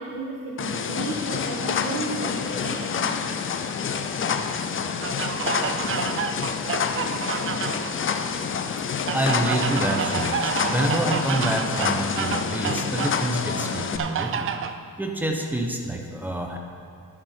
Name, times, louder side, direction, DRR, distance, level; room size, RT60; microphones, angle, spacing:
voice 1, 0.0-3.2, right 2 dB, 70° right, -3 dB, 1.3 m, -34 dB
sound 1, 0.6-14.0, left 6 dB, 40° left, 0.5 m, -28 dB
sound 2, 5.0-8.0 9.1-13.2 14.0-14.8, right 7 dB, 40° right, 0.4 m, -29 dB
voice 2, 9.1-14.5 15.0-16.6, right 1 dB, 5° right, 2 dB, 0.8 m, -27 dB
11.5 x 9.4 x 4.4 m, 2.3 s
wide cardioid pair, 175°, 34 cm